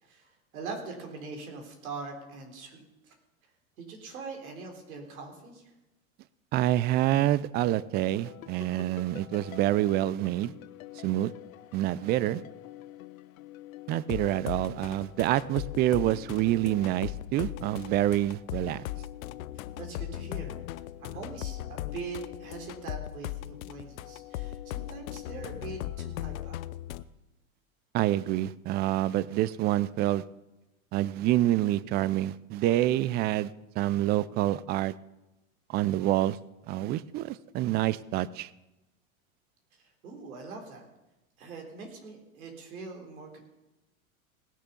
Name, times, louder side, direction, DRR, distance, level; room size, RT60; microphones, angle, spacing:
voice 1, 0.0-3.1 3.8-5.7 19.8-20.6 21.0-26.6 39.8-40.9 41.4-43.4, right 4 dB, 75° right, 3 dB, 3.8 m, -42 dB
voice 2, 6.5-10.5 11.0-11.3 11.7-12.4 13.9-18.8 27.9-30.2 30.9-34.9 35.7-36.4 36.7-38.5, right 14 dB, 25° right, 20 dB, 0.4 m, -27 dB
sound 1, 8.2-27.0, left 14 dB, 75° left, 0.8 m, -40 dB
18.5 x 6.8 x 6.9 m, 0.97 s
hypercardioid pair, 110°, 42 cm